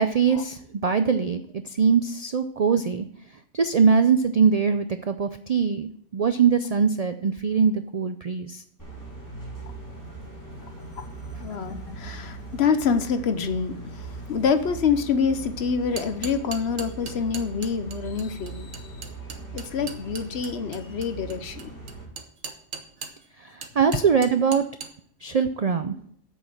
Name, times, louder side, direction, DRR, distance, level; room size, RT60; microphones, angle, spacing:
voice 1, 0.0-3.1 3.5-8.6 23.4-24.6 25.2-26.0, right 6 dB, 60° right, 9 dB, 0.4 m, -22 dB
sound 1, 8.8-22.0, right 3 dB, 15° left, 4.1 m, -40 dB
Marimba xylophone, 9.9-13.3, left 4 dB, 75° left, 2.8 m, -48 dB
voice 2, 11.4-18.9 19.5-21.7, left 6 dB, 60° left, 9 dB, 1.0 m, -26 dB
sound 2, 15.8-23.3 23.6-24.9, right 5 dB, 90° right, 1.5 m, -38 dB
8.3 x 6.3 x 7.3 m, 0.63 s
omnidirectional pair, 1.3 m